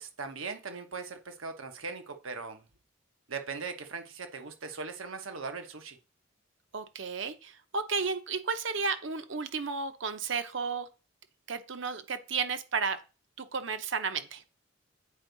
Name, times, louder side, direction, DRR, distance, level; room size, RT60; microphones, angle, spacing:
voice 1, 0.0-2.7 3.3-6.0, right 4 dB, 85° right, 6 dB, 1.2 m, -39 dB
voice 2, 6.7-10.9 11.5-13.0 13.4-14.4, right 5 dB, 65° right, 10 dB, 0.8 m, -33 dB
8.7 x 4.6 x 4.0 m, 0.32 s
head